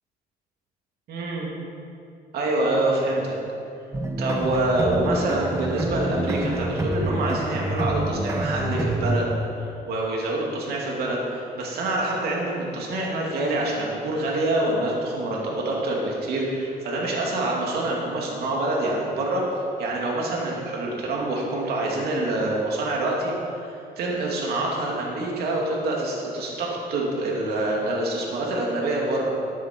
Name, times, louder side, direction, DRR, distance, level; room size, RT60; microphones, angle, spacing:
voice 1, 1.1-1.5 2.3-3.4 4.2-9.3 9.6-19.4 19.8-29.3, right 2 dB, 70° right, -2 dB, 2.7 m, -26 dB
sound 1, 3.9-9.2, right 1 dB, 15° right, 1.1 m, -27 dB
14.0 x 10.5 x 4.6 m, 2.6 s
cardioid pair, 110°, 17 cm